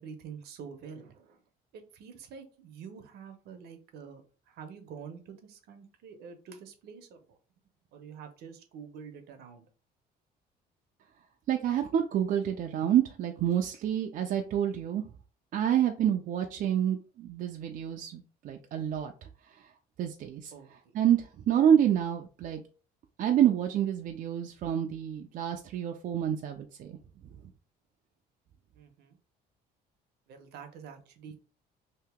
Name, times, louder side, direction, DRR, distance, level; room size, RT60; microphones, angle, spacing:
voice 1, 0.0-1.4 1.7-4.2 4.5-7.4 7.9-9.6 20.5-21.0 28.7-29.2 30.3-31.4, right 6 dB, 75° right, 7 dB, 0.8 m, -47 dB
voice 2, 11.5-15.1 15.5-19.1 20.0-20.5 20.9-22.6 23.2-27.0, right 10 dB, 55° right, 3 dB, 0.5 m, -28 dB
2.9 x 2.7 x 3.5 m, 0.37 s
cardioid pair, 110°, 17 cm